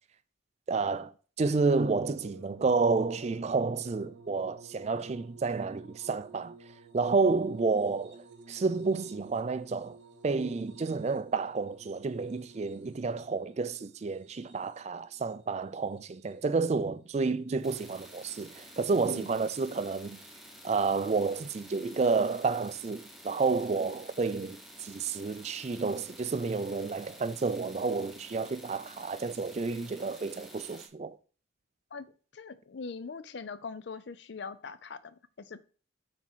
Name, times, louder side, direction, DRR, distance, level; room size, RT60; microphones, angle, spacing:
voice 1, 0.7-1.1 1.4-6.5 6.9-8.2 8.5-10.0 10.2-20.2 20.6-31.2, right 4 dB, 35° right, 0.3 m, -30 dB
sound 1, 1.5-16.8 17.7-18.4 19.8-19.9, right 3 dB, 70° right, 0.8 m, -54 dB
sound 2, 17.6-30.9, equal, ahead, 0.9 m, -51 dB
voice 2, 32.3-35.6, left 4 dB, 60° left, 0.5 m, -42 dB
5.9 x 4.3 x 4.5 m
head